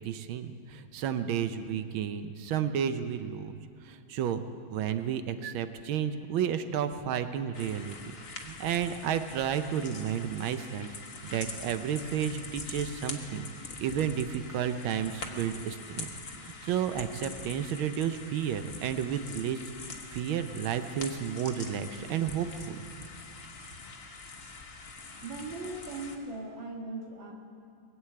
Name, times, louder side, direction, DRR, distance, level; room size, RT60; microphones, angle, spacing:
voice 1, 0.0-3.6 3.8-4.4 4.7-8.0 8.3-10.9 11.3-13.5 13.8-16.1 16.4-22.8, right 9 dB, 90° right, 10 dB, 1.5 m, -32 dB
sound 1, 7.5-26.2, left 4 dB, 35° left, 1.1 m, -44 dB
voice 2, 25.2-27.3, right 2 dB, 70° right, 0 dB, 2.3 m, -39 dB
21.0 x 8.0 x 8.5 m, 2.5 s
omnidirectional pair, 2.2 m